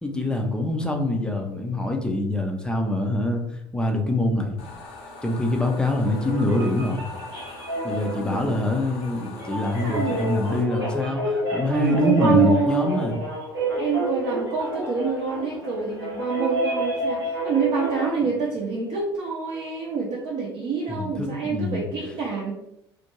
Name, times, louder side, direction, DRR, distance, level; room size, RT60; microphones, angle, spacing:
voice 1, 0.0-3.4 3.7-4.6 5.2-7.0 7.8-13.2 20.9-21.9, left 1 dB, 5° left, 2 dB, 0.5 m, -24 dB
sound 1, 4.6-10.6, left 3 dB, 55° left, 0.6 m, -42 dB
sound 2, 6.0-18.1, right 1 dB, 90° right, 0.8 m, -29 dB
voice 2, 9.8-10.2 11.7-12.9 13.8-22.5, right 5 dB, 40° right, -5 dB, 0.6 m, -26 dB
2.4 x 2.1 x 3.0 m, 0.82 s
figure-of-eight pair, 65°, 13 cm